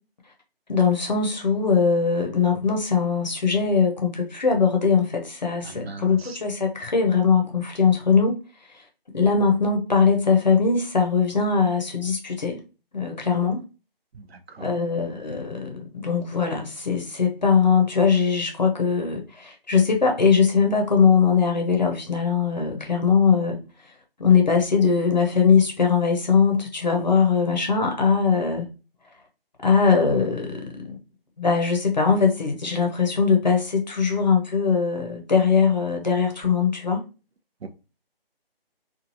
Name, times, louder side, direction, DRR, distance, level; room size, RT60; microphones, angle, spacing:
voice 1, 0.7-8.3 9.1-12.6 12.9-13.6 14.6-23.6 24.2-28.7 29.6-31.0 31.4-37.0, left 5 dB, 45° left, 0.6 m, -21 dB
voice 2, 5.6-6.4 14.1-14.7 37.6-37.7, right 4 dB, 90° right, 0.6 m, -40 dB
3.0 x 2.3 x 2.6 m
figure-of-eight pair, 175°, 30 cm